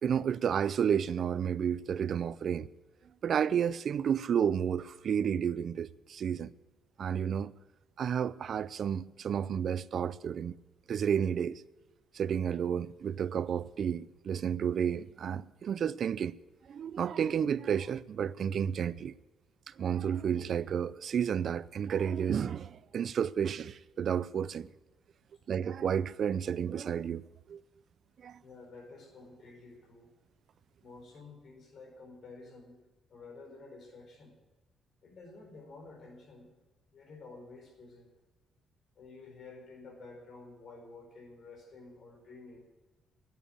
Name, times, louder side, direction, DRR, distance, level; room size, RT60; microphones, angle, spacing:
voice 1, 0.0-2.7 3.2-6.5 7.0-7.5 8.0-10.6 10.9-11.6 12.1-16.4 16.7-19.1 19.8-24.7 25.5-27.2 27.5-27.6 28.2-28.4, right 8 dB, 60° right, 0.4 m, -31 dB
voice 2, 28.4-30.1 30.8-32.8 33.1-34.3 35.0-36.5 36.9-38.1 38.9-42.7, left 3 dB, 55° left, 4.5 m, -51 dB
10.0 x 9.7 x 10.0 m
cardioid pair, 90°, 0 cm